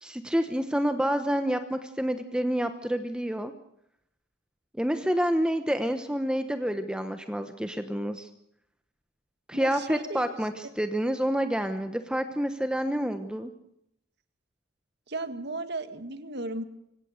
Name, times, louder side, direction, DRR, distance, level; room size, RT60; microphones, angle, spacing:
voice 1, 0.0-3.5 4.7-8.3 9.5-13.5, equal, 5° right, 8 dB, 1.0 m, -28 dB
voice 2, 9.5-10.4 15.1-16.6, right 2 dB, 55° right, 9 dB, 1.9 m, -35 dB
25.0 x 17.0 x 6.5 m, 0.75 s
head